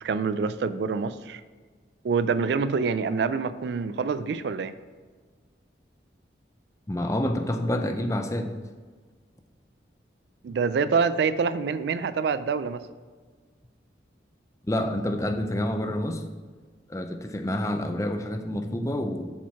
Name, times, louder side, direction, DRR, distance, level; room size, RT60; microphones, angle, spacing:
voice 1, 0.0-1.4 2.0-4.7 10.4-12.8, right 5 dB, 65° right, 13 dB, 0.3 m, -26 dB
voice 2, 6.9-8.5 14.7-16.2 16.9-19.3, left 1 dB, 15° left, 6 dB, 0.5 m, -28 dB
7.3 x 4.5 x 5.7 m, 1.5 s
head